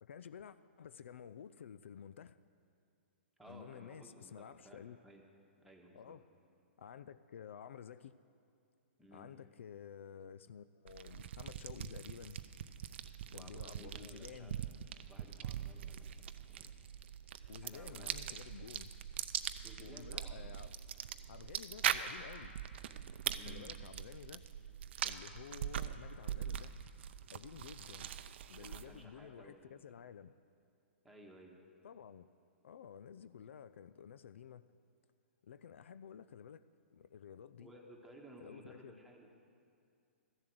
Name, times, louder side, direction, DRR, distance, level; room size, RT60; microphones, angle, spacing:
voice 1, 0.0-2.4 3.5-5.0 5.9-6.2 6.8-8.2 9.1-12.4 13.3-14.6 17.5-18.9 19.8-20.7 21.3-22.6 23.5-24.4 25.0-26.8 27.3-28.1 28.5-30.3 31.8-32.3 32.6-34.7 35.4-36.6 36.9-37.7 38.4-38.9, left 8 dB, 75° left, 15 dB, 0.4 m, -52 dB
voice 2, 3.4-5.2 5.6-6.2 9.0-9.3 13.3-14.5 15.1-16.2 16.5-16.7 17.6-18.2 19.6-20.6 23.3-23.8 28.6-29.9 31.0-31.6 37.6-39.3, equal, ahead, -1 dB, 1.5 m, -57 dB
sound 1, 10.9-29.0, right 9 dB, 60° right, 0.5 m, -42 dB
14.0 x 7.4 x 7.7 m, 2.4 s
hypercardioid pair, 130°, 7 cm